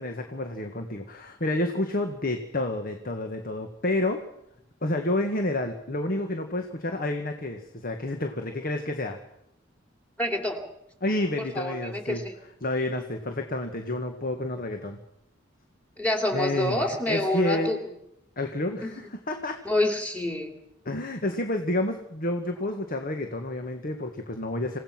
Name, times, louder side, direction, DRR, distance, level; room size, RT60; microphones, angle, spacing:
voice 1, 0.0-4.2 4.8-9.2 11.0-12.2 12.6-15.0 16.3-17.7 18.4-19.6 20.9-24.8, left 1 dB, 45° left, 5 dB, 1.8 m, -29 dB
voice 2, 10.2-10.6 11.5-12.3 16.0-17.8 18.8-18.9 19.6-20.5, left 1 dB, 5° left, 4 dB, 3.1 m, -27 dB
27.5 x 17.0 x 6.1 m, 0.81 s
head